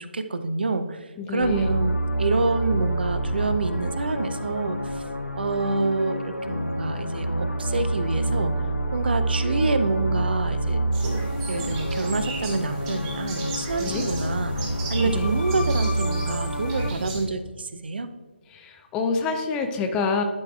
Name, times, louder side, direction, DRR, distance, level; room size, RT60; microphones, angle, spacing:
voice 1, 0.0-5.0 5.4-8.6 8.9-11.2 11.5-18.1, right 3 dB, 60° right, 10 dB, 0.5 m, -27 dB
voice 2, 1.2-1.7 13.8-14.0 15.1-15.3 18.5-20.2, left 4 dB, 10° left, 5 dB, 0.4 m, -27 dB
sound 1, 1.4-16.9, right 1 dB, 90° left, 0.6 m, -27 dB
sound 2, 10.9-17.2, right 2 dB, 20° right, 1.1 m, -35 dB
11.5 x 4.6 x 2.3 m, 1.4 s
figure-of-eight pair, 145°, 6 cm